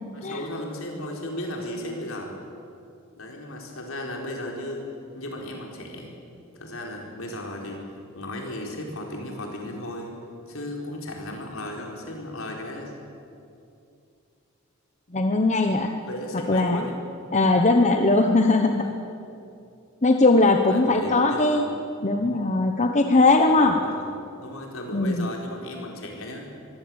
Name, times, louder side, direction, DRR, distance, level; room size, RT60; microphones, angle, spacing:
voice 1, 0.1-2.4 3.2-4.8 5.1-6.1 6.5-7.9 8.1-10.2 10.5-12.9 16.0-17.0 18.6-18.9 20.7-21.7 23.5-24.1 24.4-26.5, left 1 dB, 70° left, 1 dB, 4.5 m, -35 dB
voice 2, 15.1-15.9 16.5-16.8 17.3-18.9 20.0-21.6 22.0-23.8 24.9-25.3, left 2 dB, 35° left, 5 dB, 1.0 m, -20 dB
23.5 x 16.5 x 8.8 m, 2.6 s
head